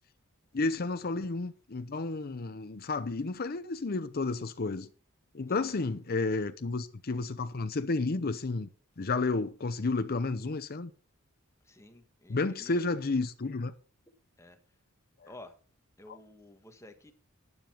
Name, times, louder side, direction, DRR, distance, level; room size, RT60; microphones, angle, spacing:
voice 1, 0.5-4.9 5.3-8.7 9.0-10.9 12.3-13.7, left 3 dB, 45° left, 0.7 m, -31 dB
voice 2, 5.5-5.8 11.6-12.9 14.4-14.6 15.3-15.6 16.0-17.1, left 1 dB, 15° left, 1.4 m, -52 dB
12.0 x 9.7 x 4.4 m
head